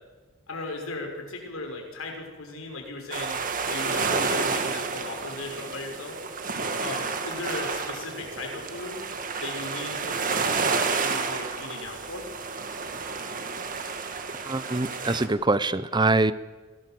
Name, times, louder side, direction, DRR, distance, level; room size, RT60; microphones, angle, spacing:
voice 1, 0.5-3.4 3.7-6.2 6.8-9.0 9.4-12.3, left 2 dB, 90° left, 2 dB, 6.2 m, -37 dB
sound 1, 3.1-15.3, right 4 dB, 40° right, 2.1 m, -30 dB
voice 2, 14.4-16.3, right 2 dB, 20° right, 15 dB, 0.8 m, -24 dB
24.5 x 18.5 x 7.8 m, 1.3 s
head